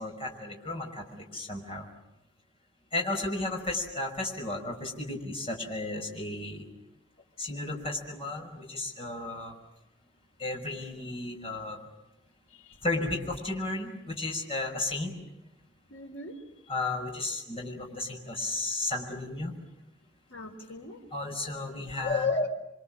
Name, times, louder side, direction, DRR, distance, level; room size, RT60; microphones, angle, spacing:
voice 1, 0.0-1.9 2.9-6.7 7.4-9.5 10.4-11.8 12.8-15.1 16.7-19.6 21.1-22.2, left 2 dB, 30° left, 1 dB, 5.6 m, -34 dB
voice 2, 12.5-12.8 15.9-16.4 20.3-21.0 22.0-22.5, left 4 dB, 85° left, 0 dB, 3.5 m, -32 dB
30.0 x 24.5 x 7.5 m, 0.91 s
head